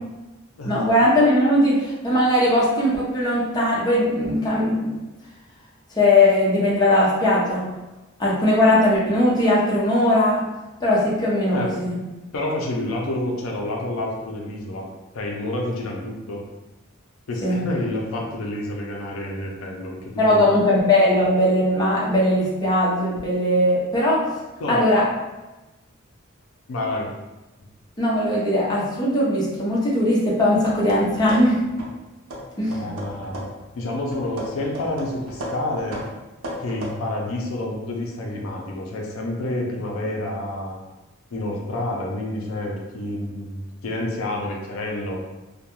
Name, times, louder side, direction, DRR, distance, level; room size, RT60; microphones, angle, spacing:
voice 1, 0.6-4.9 6.0-7.7 8.2-10.4 10.8-12.0 17.4-17.6 20.2-24.3 24.7-25.0 28.0-31.6 32.6-32.9, left 1 dB, 20° left, -7 dB, 0.6 m, -19 dB
voice 2, 12.3-14.9 15.1-16.4 17.3-20.4 24.6-24.8 26.7-27.1 32.7-33.5 33.7-36.0 36.6-40.8 41.3-45.2, left 1 dB, 80° left, 0 dB, 0.5 m, -28 dB
sound 1, 30.5-32.0 32.3-33.7 34.1-37.0, equal, 85° right, 0.5 m, -35 dB
2.2 x 2.2 x 2.9 m, 1.1 s
head